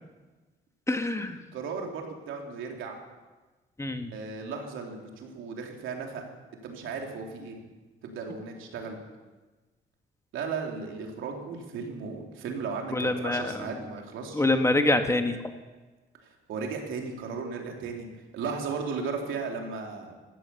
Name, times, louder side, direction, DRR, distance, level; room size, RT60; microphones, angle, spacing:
voice 1, 0.9-1.4 3.8-4.1 12.9-13.7 14.3-15.4, left 2 dB, 15° left, 6 dB, 1.5 m, -25 dB
voice 2, 1.5-3.0 4.1-6.2 6.6-7.6 8.0-9.0 10.3-14.4 16.2-18.1 18.3-20.2, right 5 dB, 85° right, 1 dB, 3.3 m, -35 dB
16.0 x 12.5 x 7.1 m, 1.2 s
cardioid pair, 90°, 20 cm